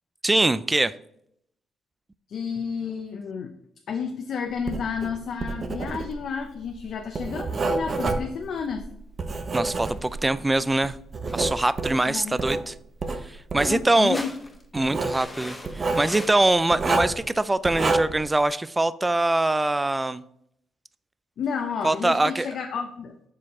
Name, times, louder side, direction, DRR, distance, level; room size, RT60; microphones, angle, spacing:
voice 1, 0.2-0.9 9.5-11.0 11.3-12.7 13.2-14.2 14.7-20.2 21.8-22.5, right 2 dB, 15° right, 16 dB, 0.3 m, -23 dB
voice 2, 2.3-3.5 3.9-8.9 12.1-12.4 13.7-14.3 21.4-23.1, left 6 dB, 65° left, 4 dB, 0.7 m, -31 dB
Writing, 4.6-10.4 10.8-12.6 13.0-13.8 14.8-15.2 15.6-16.1 16.7-17.2 17.6-18.2, right 3 dB, 40° right, 0.8 m, -28 dB
sound 1, 9.7-10.3 11.3-11.6 13.9-14.6 15.1-16.8 17.4-17.5, left 1 dB, 15° left, 0.9 m, -40 dB
7.3 x 4.6 x 3.6 m, 0.74 s
cardioid pair, 90°, 0 cm